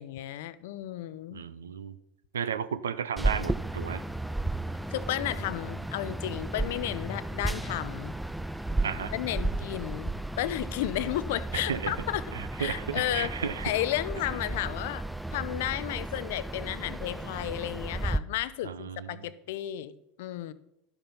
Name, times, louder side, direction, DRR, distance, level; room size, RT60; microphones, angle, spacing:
voice 1, 0.0-1.4 4.9-8.1 9.1-12.2 12.6-15.0 15.3-20.5, left 13 dB, 65° left, 16 dB, 0.6 m, -33 dB
voice 2, 1.3-2.0 2.3-4.0 8.8-9.1 11.5-11.9 12.3-13.7 18.6-19.3, right 7 dB, 80° right, 15 dB, 0.6 m, -34 dB
sound 1, 3.2-18.2, right 2 dB, 5° right, 0.4 m, -34 dB
12.0 x 7.1 x 5.4 m, 0.80 s
hypercardioid pair, 80°, 0 cm